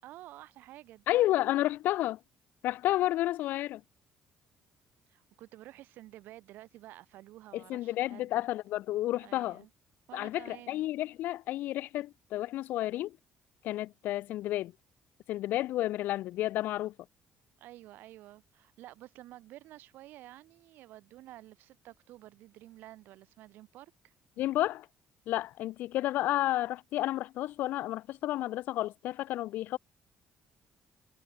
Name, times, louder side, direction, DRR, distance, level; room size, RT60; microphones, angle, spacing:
voice 1, 0.0-1.5 5.1-8.4 9.2-9.7 10.1-10.9 17.6-24.1, right 15 dB, 80° right, 6.9 m, -51 dB
voice 2, 1.1-2.2 2.6-3.8 7.5-9.6 10.1-13.2 13.6-14.7 15.3-16.9 24.4-24.9 25.3-29.8, left 15 dB, 75° left, 0.6 m, -31 dB
cardioid pair, 100°, 3 cm